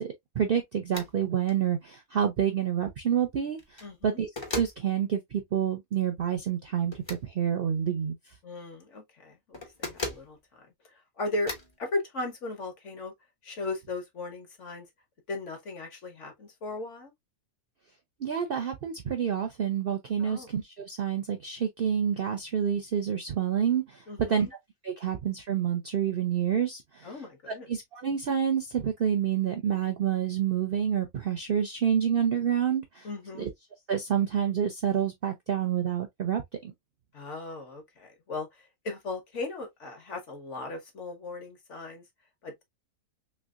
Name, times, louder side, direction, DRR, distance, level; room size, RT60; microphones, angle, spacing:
voice 1, 0.0-8.1 18.2-24.0 24.3-24.5 24.8-27.1 27.5-33.1 33.4-33.5 33.9-36.7, right 8 dB, 60° right, 0.6 m, -28 dB
sound 1, 0.9-1.1 1.5-1.6 3.5-3.9 4.4-4.8 6.9-7.2 9.5-10.3 11.5-11.7, left 2 dB, 25° left, 0.7 m, -36 dB
voice 2, 3.8-4.2 8.4-11.5 11.8-13.1 13.4-14.9 15.3-17.1 20.2-20.5 24.1-24.5 27.0-27.7 33.0-33.5 37.1-42.0 42.4-42.6, left 2 dB, 55° left, 1.3 m, -37 dB
3.3 x 3.2 x 2.4 m
omnidirectional pair, 1.6 m